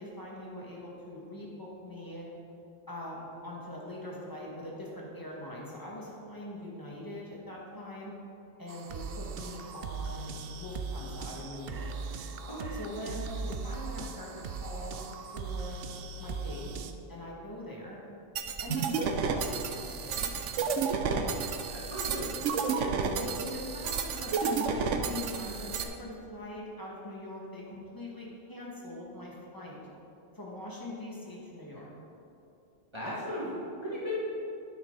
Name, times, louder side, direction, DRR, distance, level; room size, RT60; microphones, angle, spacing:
voice 1, 0.0-2.3 2.9-8.1 8.6-11.9 12.7-15.0 15.3-15.8 16.2-16.7 17.1-18.0 18.6-20.7 22.7-29.8 30.3-31.8, left 1 dB, 15° left, -5 dB, 1.9 m, -42 dB
sound 1, 8.7-16.9, right 4 dB, 60° right, 0.7 m, -39 dB
sound 2, 18.4-25.8, right 5 dB, 85° right, 1.0 m, -31 dB
voice 2, 21.7-22.3 32.9-33.5 33.8-34.1, equal, 20° right, -9 dB, 2.1 m, -36 dB
9.7 x 9.4 x 4.0 m, 2.7 s
omnidirectional pair, 1.2 m